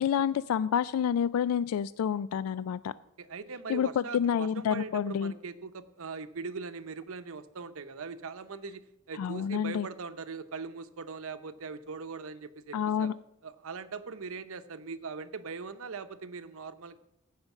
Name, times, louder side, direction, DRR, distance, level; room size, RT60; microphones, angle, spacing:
voice 1, 0.0-2.9 3.7-5.3 9.2-9.9 12.7-13.1, left 8 dB, 75° left, 16 dB, 0.3 m, -28 dB
voice 2, 3.2-13.1 13.4-17.0, right 4 dB, 70° right, 11 dB, 0.7 m, -41 dB
15.0 x 5.1 x 7.2 m, 0.84 s
head